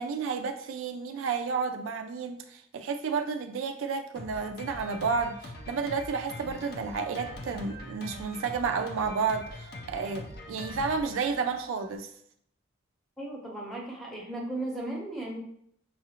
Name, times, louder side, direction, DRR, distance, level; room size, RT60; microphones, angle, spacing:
voice 1, 0.0-12.1, right 5 dB, 70° right, 7 dB, 0.3 m, -31 dB
Drum kit, 4.2-12.0, left 1 dB, 50° left, 0.6 m, -43 dB
voice 2, 13.2-15.4, right 1 dB, ahead, -3 dB, 0.8 m, -36 dB
5.5 x 2.4 x 2.9 m, 0.69 s
head